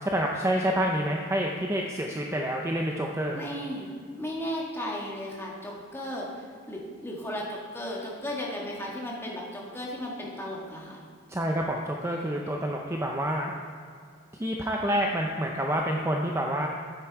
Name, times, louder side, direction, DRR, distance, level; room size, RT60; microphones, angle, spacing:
voice 1, 0.0-3.4 11.3-13.5 14.4-16.7, equal, 15° right, 0 dB, 0.5 m, -28 dB
voice 2, 3.3-3.9 4.2-11.0, left 1 dB, 10° left, -3 dB, 1.6 m, -35 dB
9.6 x 8.9 x 4.7 m, 2.2 s
head